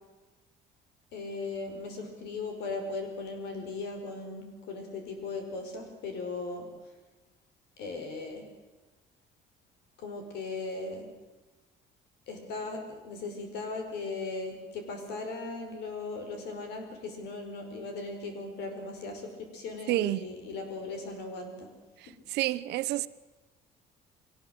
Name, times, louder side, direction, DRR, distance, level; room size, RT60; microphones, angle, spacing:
voice 1, 1.1-6.7 7.8-8.5 10.0-11.1 12.3-21.7, left 3 dB, 85° left, 5.2 m, -38 dB
voice 2, 19.9-20.3 22.0-23.1, right 16 dB, 80° right, 0.9 m, -29 dB
22.5 x 18.5 x 7.9 m
cardioid pair, 110°, 17 cm